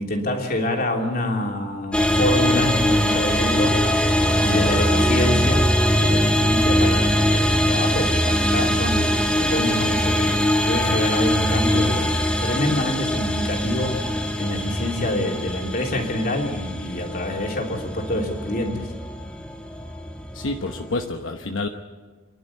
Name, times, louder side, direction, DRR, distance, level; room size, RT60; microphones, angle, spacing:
voice 1, 0.0-10.4 10.7-12.1 12.4-14.0 14.4-18.9, left 1 dB, 45° left, 1 dB, 3.2 m, -26 dB
sound 1, 1.9-21.1, equal, 5° left, 1.5 m, -22 dB
voice 2, 4.4-5.1 20.3-21.7, left 2 dB, 75° left, 4 dB, 1.0 m, -29 dB
28.0 x 11.5 x 8.4 m, 1.4 s
head